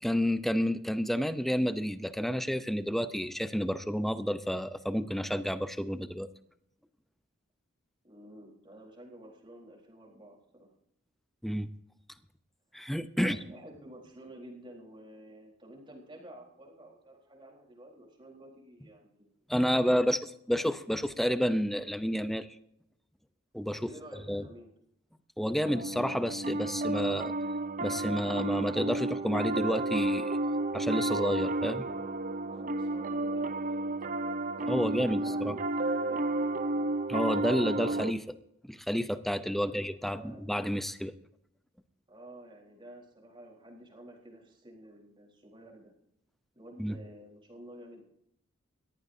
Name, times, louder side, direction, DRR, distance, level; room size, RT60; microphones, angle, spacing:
voice 1, 0.0-6.3 11.4-11.7 12.7-13.4 19.5-20.2 20.5-22.5 23.5-23.9 24.3-24.5 25.4-27.3 27.8-30.4 30.7-31.9 34.7-35.6 37.1-38.3 38.7-41.1 46.8-47.0, equal, ahead, 11 dB, 0.6 m, -30 dB
voice 2, 8.0-10.7 13.2-20.0 23.8-24.7 32.4-33.8 34.5-36.5 39.6-40.4 42.1-45.9 46.5-48.0, right 1 dB, 25° right, -1 dB, 4.0 m, -51 dB
Piano, 25.6-38.1, right 2 dB, 40° right, 0.6 m, -32 dB
21.0 x 14.5 x 2.7 m, 0.75 s
head